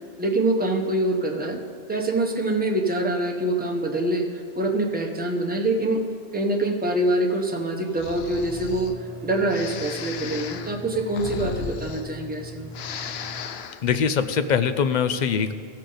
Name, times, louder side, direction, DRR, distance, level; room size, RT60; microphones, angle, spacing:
voice 1, 0.2-1.6 1.9-6.0 6.3-8.9 9.2-12.7, right 1 dB, 10° right, 1 dB, 0.8 m, -25 dB
Breathing, 7.9-8.9 9.5-12.4 12.7-13.8, left 7 dB, 90° left, 0.8 m, -36 dB
sound 1, 8.2-13.4, right 1 dB, 40° right, 1.0 m, -41 dB
voice 2, 13.8-15.5, left 7 dB, 55° left, 10 dB, 0.6 m, -22 dB
15.5 x 6.6 x 3.9 m, 2.3 s
omnidirectional pair, 1.0 m